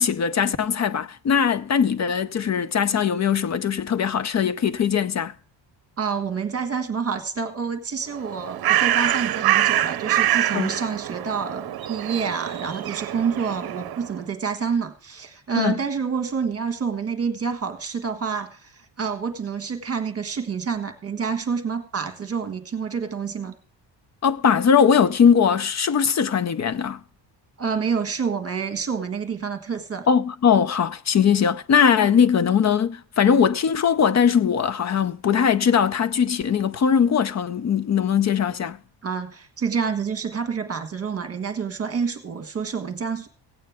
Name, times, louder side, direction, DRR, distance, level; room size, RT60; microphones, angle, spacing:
voice 1, 0.0-5.3 10.5-10.7 15.5-15.8 24.2-27.0 30.1-38.8, left 7 dB, 35° left, 0.7 m, -20 dB
voice 2, 6.0-23.5 27.6-30.1 39.0-43.3, right 6 dB, 30° right, 1.5 m, -28 dB
Bird, 8.1-14.2, right 12 dB, 55° right, 0.8 m, -25 dB
16.5 x 8.7 x 3.5 m
cardioid pair, 125°, 45 cm